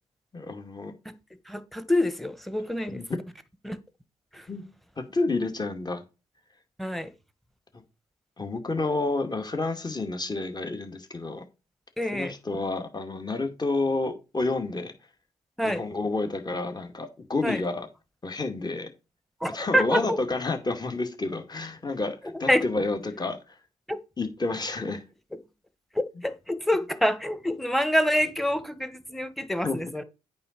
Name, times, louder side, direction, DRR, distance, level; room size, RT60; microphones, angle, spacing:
voice 1, 0.3-0.9 2.9-3.1 4.5-4.7 5.0-6.0 7.7-7.8 8.4-11.4 12.1-14.9 15.6-17.9 18.2-18.9 19.5-23.6 24.2-25.0 29.6-29.8, left 3 dB, 30° left, 2.3 m, -30 dB
voice 2, 1.4-3.0 3.6-3.8 4.3-4.5 6.8-7.1 12.0-12.3 15.6-15.8 17.4-17.6 19.4-20.2 22.5-22.6 23.9-24.0 25.9-30.0, equal, ahead, 1.4 m, -26 dB
8.7 x 4.0 x 6.7 m
supercardioid pair, 55°, 14 cm